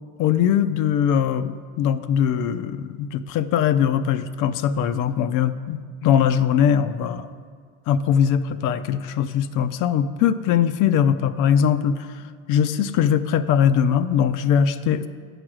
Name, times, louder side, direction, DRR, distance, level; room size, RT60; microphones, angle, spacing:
voice 1, 0.2-7.3 7.9-12.2 12.5-15.1, left 8 dB, 55° left, 12 dB, 0.5 m, -21 dB
8.7 x 4.9 x 6.1 m, 2.1 s
supercardioid pair, 110°, 39 cm